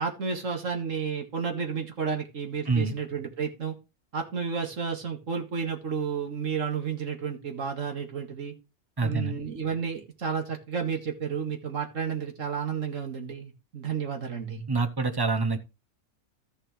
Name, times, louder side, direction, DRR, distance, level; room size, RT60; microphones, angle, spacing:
voice 1, 0.0-3.8 4.1-8.5 9.0-14.6, right 6 dB, 60° right, 2.2 m, -31 dB
voice 2, 9.0-9.4 14.7-15.6, right 4 dB, 25° right, 0.6 m, -26 dB
13.5 x 6.6 x 3.2 m
omnidirectional pair, 1.5 m